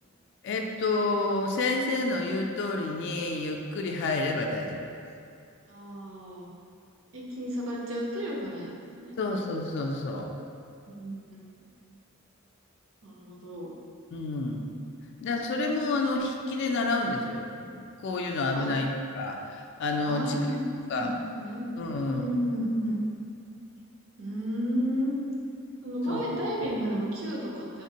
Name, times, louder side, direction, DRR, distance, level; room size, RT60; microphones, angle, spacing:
voice 1, 0.4-4.9 9.2-10.3 14.1-14.7 15.2-18.9 19.1-20.4 20.9-21.1 21.8-22.3 26.1-26.2, left 2 dB, 60° left, 2 dB, 0.3 m, -29 dB
voice 2, 5.7-6.5 7.1-8.7 9.0-9.2 10.9-11.2 13.0-13.7 18.5-18.7 20.1-20.6 20.9-21.7 22.1-23.0 24.2-25.2 25.8-27.8, equal, 70° right, -3 dB, 0.7 m, -32 dB
3.5 x 3.3 x 2.8 m, 2.5 s
head